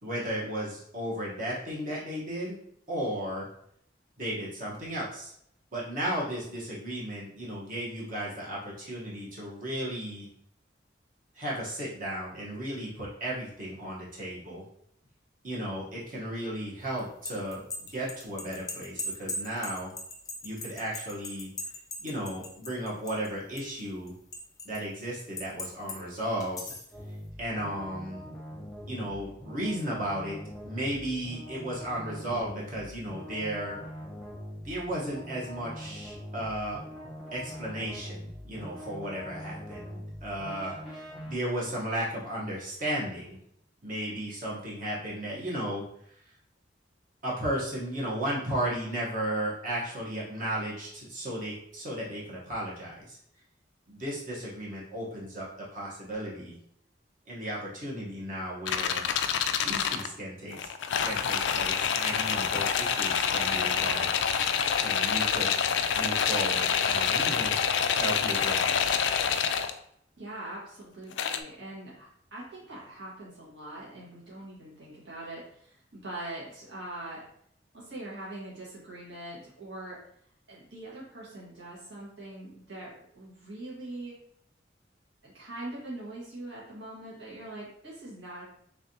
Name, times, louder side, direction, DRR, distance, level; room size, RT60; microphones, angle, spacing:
voice 1, 0.0-2.6 2.9-3.5 4.2-5.3 5.7-10.3 11.3-14.6 15.4-19.9 20.4-21.5 22.0-24.1 24.6-26.6 27.4-28.2 28.9-30.3 30.6-33.8 34.6-36.8 37.3-40.7 41.2-43.4 43.8-45.8 47.2-53.2 53.9-56.6 57.3-59.1 59.6-60.6 61.0-64.1 64.5-65.6 66.0-67.5 67.9-69.0, right 1 dB, 45° right, -5 dB, 1.1 m, -34 dB
sound 1, 17.0-23.3 23.6-24.8 25.4-26.0 26.4-26.9, left 1 dB, 20° left, 0.5 m, -38 dB
sound 2, 26.9-41.3, equal, ahead, 0.8 m, -43 dB
sound 3, 58.7-60.1 60.5-69.7 71.1-71.4, left 7 dB, 80° left, 0.3 m, -27 dB
voice 2, 70.2-77.2 77.7-80.0 80.5-84.1 85.2-88.4, right 1 dB, 75° right, -7 dB, 1.5 m, -42 dB
3.4 x 3.3 x 2.8 m, 0.68 s
head